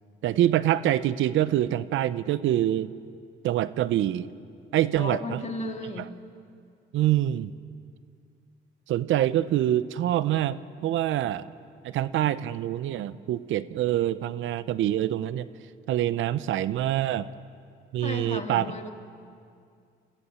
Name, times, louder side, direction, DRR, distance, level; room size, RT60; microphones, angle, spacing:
voice 1, 0.2-2.9 3.4-4.3 4.7-5.4 6.0-6.1 6.9-7.5 8.9-11.5 11.8-15.5 15.9-17.3 17.9-18.7, right 12 dB, 80° right, 16 dB, 0.7 m, -25 dB
voice 2, 5.0-6.1 18.0-18.9, left 2 dB, 35° left, 4 dB, 2.2 m, -34 dB
27.0 x 15.5 x 7.1 m, 2.3 s
cardioid pair, 90°, 20 cm